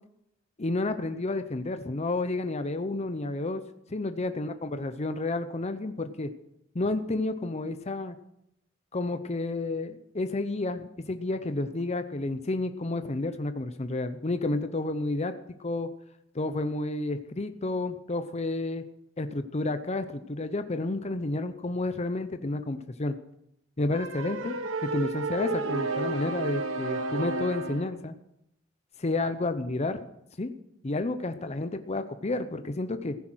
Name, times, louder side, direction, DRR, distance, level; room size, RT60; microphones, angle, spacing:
voice 1, 0.6-3.6 3.9-6.3 6.7-8.2 8.9-15.3 15.6-15.9 16.3-18.8 19.2-23.2 23.8-28.1 29.0-30.0 30.4-30.5 30.8-33.2, left 2 dB, 35° left, 9 dB, 0.7 m, -30 dB
sound 1, 23.9-27.9, right 3 dB, 90° right, 1.1 m, -32 dB
15.5 x 10.5 x 6.2 m, 0.81 s
head